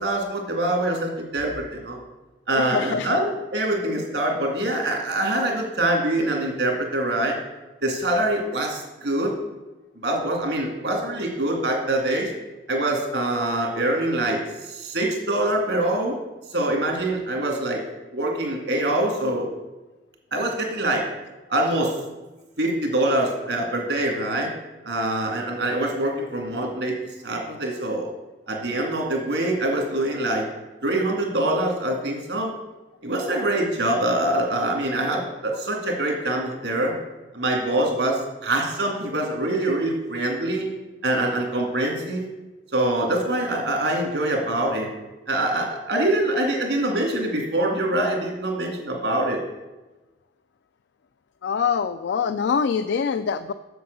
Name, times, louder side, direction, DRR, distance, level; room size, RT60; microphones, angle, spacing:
voice 1, 0.0-2.0 2.5-7.4 7.8-9.3 10.0-12.3 12.7-16.2 16.5-17.8 18.1-19.5 20.3-21.0 21.5-22.0 22.6-24.5 24.8-27.0 27.2-28.1 28.5-30.5 30.8-32.5 33.0-37.0 37.3-40.7 41.0-42.2 42.7-44.9 45.3-49.4, right 1 dB, 80° right, 1 dB, 2.5 m, -24 dB
voice 2, 2.5-3.1 51.4-53.5, left 6 dB, 80° left, 11 dB, 0.4 m, -24 dB
7.9 x 6.8 x 6.7 m, 1.1 s
head